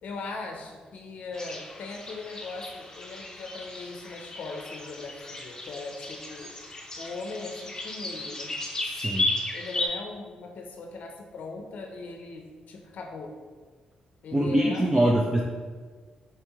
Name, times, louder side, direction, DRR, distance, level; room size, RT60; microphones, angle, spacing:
voice 1, 0.0-6.6 7.0-8.5 9.5-13.4 14.2-15.2, left 3 dB, 70° left, 3 dB, 0.5 m, -39 dB
sound 1, 1.3-9.9, left 2 dB, 25° left, 0.6 m, -35 dB
voice 2, 8.9-9.3 14.3-15.4, right 1 dB, 20° right, -1 dB, 0.4 m, -23 dB
4.6 x 3.0 x 3.4 m, 1.5 s
cardioid pair, 90°, 3 cm